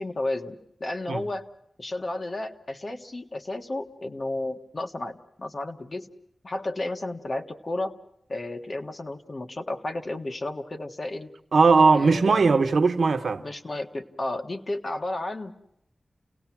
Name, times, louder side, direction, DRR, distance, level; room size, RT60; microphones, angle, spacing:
voice 1, 0.0-1.5 1.8-6.1 6.4-8.0 8.3-11.3 11.9-12.5 13.4-15.5, left 2 dB, 40° left, 1.5 m, -32 dB
voice 2, 11.5-13.4, right 4 dB, 90° right, 1.1 m, -19 dB
29.5 x 18.0 x 6.1 m
wide cardioid pair, 115°, 0 cm